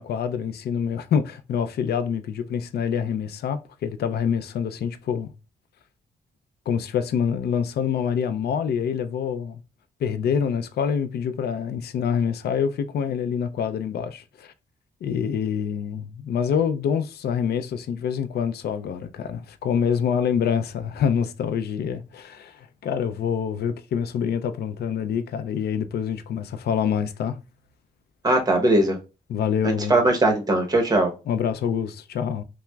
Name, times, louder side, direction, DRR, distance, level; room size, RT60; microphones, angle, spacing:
voice 1, 0.0-5.3 6.7-9.6 10.0-14.5 15.0-27.4 29.3-30.0 31.3-32.4, left 7 dB, 85° left, 0.4 m, -26 dB
voice 2, 28.2-29.0 29.6-31.1, right 1 dB, 25° right, 0.9 m, -20 dB
5.6 x 2.0 x 2.3 m
wide cardioid pair, 135°, 16 cm